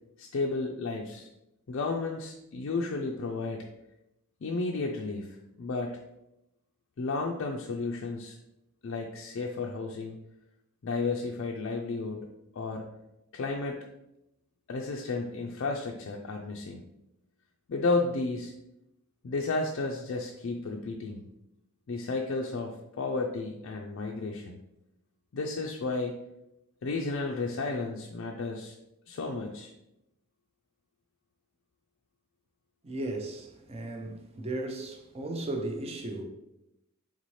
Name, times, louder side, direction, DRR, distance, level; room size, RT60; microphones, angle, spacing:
voice 1, 0.2-1.3 1.7-3.6 4.4-6.0 7.0-8.4 8.8-10.2 10.8-12.9 13.3-13.8 14.7-16.8 17.7-18.5 19.2-21.3 21.9-24.6 25.3-26.2 26.8-28.7 29.1-29.7, left 3 dB, 60° left, 0.4 m, -32 dB
voice 2, 32.8-36.2, right 2 dB, 30° right, 0.5 m, -36 dB
4.1 x 3.6 x 3.1 m
head